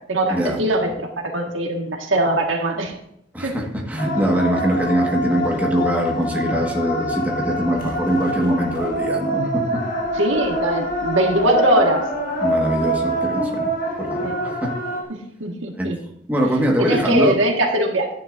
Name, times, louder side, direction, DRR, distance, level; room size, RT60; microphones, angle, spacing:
voice 1, 0.1-2.9 3.4-3.5 10.2-12.1 14.2-14.4 15.1-16.0 16.8-18.1, right 1 dB, 90° right, 2 dB, 1.7 m, -21 dB
voice 2, 3.3-9.8 12.4-13.7 14.0-14.8 15.8-15.9 16.3-17.4, equal, 10° right, -1 dB, 1.6 m, -22 dB
sound 1, 4.0-15.0, equal, 45° left, 1.7 m, -25 dB
11.0 x 10.0 x 2.6 m, 0.76 s
head